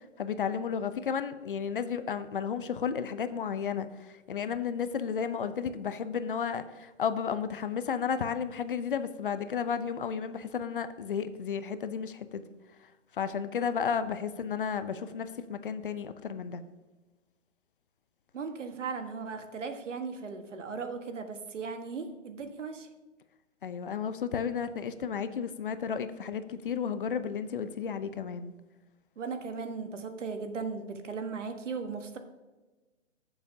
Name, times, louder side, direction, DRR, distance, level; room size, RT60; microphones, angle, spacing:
voice 1, 0.2-12.4 13.1-16.6 23.6-28.5, left 7 dB, 45° left, 12 dB, 0.6 m, -33 dB
voice 2, 18.3-22.9 29.2-32.2, right 5 dB, 75° right, 7 dB, 1.4 m, -37 dB
13.5 x 7.0 x 2.7 m, 1.2 s
hypercardioid pair, 155°, 37 cm